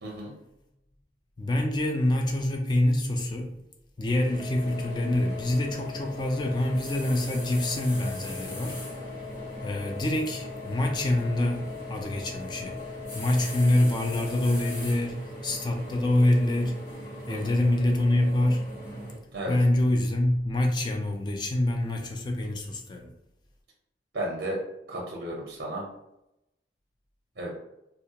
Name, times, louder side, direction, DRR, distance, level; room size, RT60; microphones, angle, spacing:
voice 1, 0.0-0.3 17.3-17.6 19.3-19.5 24.1-24.6 24.9-25.8 27.4-27.5, right 1 dB, 60° right, -2 dB, 0.5 m, -33 dB
voice 2, 1.4-3.5 4.0-8.9 9.6-12.8 13.1-15.2 15.4-16.8 17.3-18.7 19.5-23.1, left 1 dB, 25° left, 2 dB, 0.3 m, -26 dB
sound 1, 4.1-19.2, equal, 55° left, 1.0 m, -40 dB
sound 2, 4.4-14.8, left 13 dB, 75° left, 0.7 m, -43 dB
2.2 x 2.0 x 2.7 m, 0.86 s
head